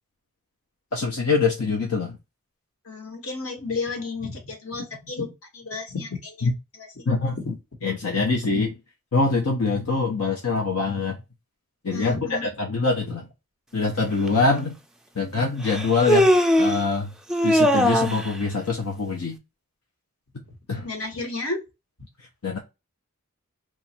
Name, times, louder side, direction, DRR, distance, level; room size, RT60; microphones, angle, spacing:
voice 1, 0.9-2.2 6.4-6.5 7.1-7.4 7.8-8.8 9.1-11.2 11.8-13.2 13.7-14.7 15.2-16.3 16.6-17.1 17.4-19.4 20.7-20.9 22.4-22.6, left 4 dB, 90° left, 0.8 m, -24 dB
voice 2, 2.8-6.5 6.8-7.1 7.3-7.5 11.9-12.5 20.8-21.6, left 3 dB, 70° left, 1.4 m, -32 dB
Human voice, 14.3-14.4 15.6-16.8 17.3-18.3, equal, 5° right, 0.3 m, -20 dB
3.0 x 2.5 x 4.3 m
head